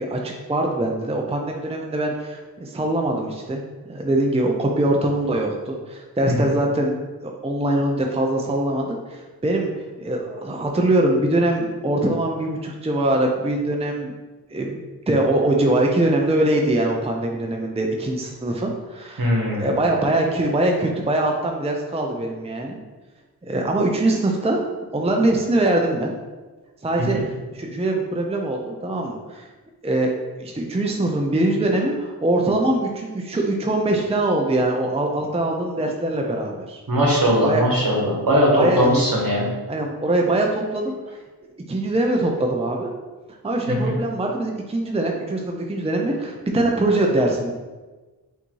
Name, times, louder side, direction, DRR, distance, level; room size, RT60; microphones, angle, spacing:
voice 1, 0.0-3.6 3.9-6.9 7.2-9.7 10.0-14.1 14.5-22.8 23.5-24.6 24.9-26.1 26.8-27.2 27.5-29.5 29.8-30.1 30.4-36.8 37.4-37.6 38.5-39.0 39.7-40.9 41.7-42.9 43.4-47.5, right 1 dB, 15° right, 1 dB, 0.5 m, -22 dB
voice 2, 19.2-19.7 27.0-27.2 36.9-39.4 43.7-43.9, equal, 60° right, -3 dB, 1.3 m, -20 dB
3.6 x 2.7 x 4.5 m, 1.2 s
cardioid pair, 40°, 39 cm